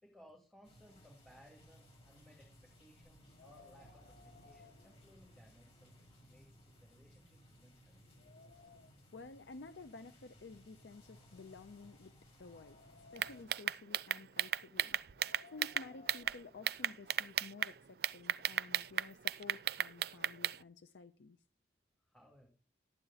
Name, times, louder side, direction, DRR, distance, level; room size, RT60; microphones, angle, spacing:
voice 1, 0.0-8.0 22.0-22.5, equal, 5° left, 2.5 m, -63 dB
sound 1, 0.6-13.4, equal, 35° left, 5.5 m, -62 dB
Wind, 3.2-5.8 6.2-6.3 7.0-7.1 7.5-9.2 10.0-11.5 12.1-13.7 15.0-17.1, left 3 dB, 65° left, 1.2 m, -63 dB
voice 2, 9.1-12.8 13.1-15.0 15.5-21.4, left 3 dB, 85° left, 0.6 m, -53 dB
sound 2, 13.2-16.4 16.7-17.7 18.0-20.6, right 10 dB, 60° right, 0.4 m, -34 dB
12.0 x 8.9 x 4.0 m
head